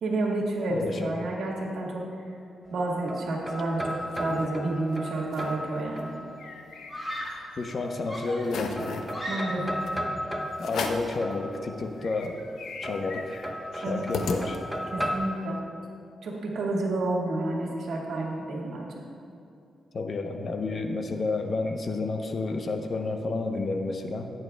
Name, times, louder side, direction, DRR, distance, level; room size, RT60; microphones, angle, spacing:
voice 1, 0.0-2.0 2.7-6.1 9.3-9.8 13.8-14.1 14.9-15.6 16.2-18.9, right 2 dB, 80° right, -2 dB, 1.9 m, -30 dB
voice 2, 0.7-1.1 7.6-9.1 10.6-12.4 12.8-13.4 13.7-14.6 19.9-24.3, left 3 dB, 50° left, 5 dB, 0.8 m, -30 dB
sound 1, 2.7-6.6 7.8-8.5 8.8-12.0 12.8-15.2, equal, 5° right, 0.8 m, -35 dB
sound 2, 3.7-4.5 4.9-5.0 5.2-5.6 6.0-7.6 8.0-8.1 8.4-9.1 9.9-10.0 10.6-11.2 11.6-11.7 12.0-15.0, left 4 dB, 85° left, 0.7 m, -36 dB
Screaming, 6.9-7.5 8.1-9.8, equal, 25° left, 2.1 m, -37 dB
15.5 x 9.0 x 2.3 m, 2.5 s
cardioid pair, 90°, 0 cm